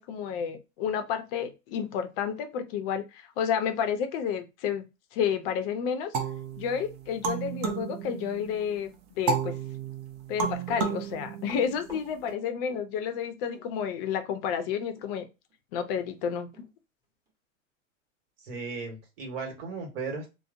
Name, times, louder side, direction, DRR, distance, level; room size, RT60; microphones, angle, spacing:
voice 1, 0.0-6.1 6.6-9.6 10.3-15.2 15.7-16.5, left 7 dB, 45° left, 8 dB, 0.6 m, -31 dB
sound 1, 6.1-8.6 9.3-12.1, right 6 dB, 45° right, 0.6 m, -32 dB
Run, 10.6-13.3 13.5-13.7 15.0-15.2 15.5-15.6 16.1-16.2 16.5-16.7 17.3-17.4, right 1 dB, 10° right, 0.8 m, -48 dB
voice 2, 18.4-20.3, right 4 dB, 60° right, 2 dB, 1.3 m, -36 dB
2.8 x 2.0 x 2.4 m, 0.26 s
hypercardioid pair, 130°, 39 cm